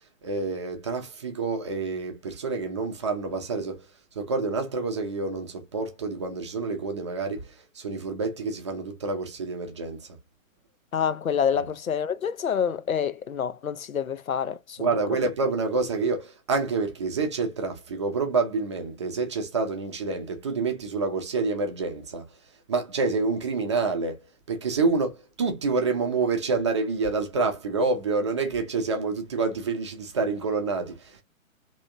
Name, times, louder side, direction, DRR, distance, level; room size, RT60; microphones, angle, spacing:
voice 1, 0.2-3.9 4.1-10.1 14.8-22.2 22.7-24.2 24.5-31.2, right 4 dB, 20° right, 0.5 m, -28 dB
voice 2, 10.9-14.9, left 7 dB, 80° left, 0.6 m, -27 dB
3.2 x 2.8 x 2.5 m
figure-of-eight pair, 125°, 41 cm